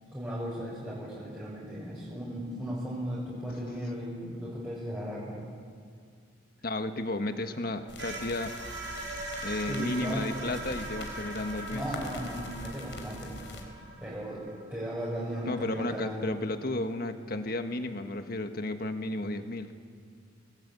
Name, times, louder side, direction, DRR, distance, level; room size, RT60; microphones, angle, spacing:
voice 1, 0.1-5.4 9.6-10.3 11.7-13.3 14.0-14.4 14.7-16.3, equal, 10° right, -8 dB, 5.8 m, -36 dB
voice 2, 6.6-8.5 9.4-11.8 15.4-19.7, left 2 dB, 50° left, 7 dB, 1.5 m, -33 dB
sound 1, 7.2-16.1, right 2 dB, 75° right, 7.0 m, -42 dB
sound 2, 7.9-13.6, left 2 dB, 75° left, 3.9 m, -44 dB
28.0 x 20.5 x 8.4 m, 2.2 s
head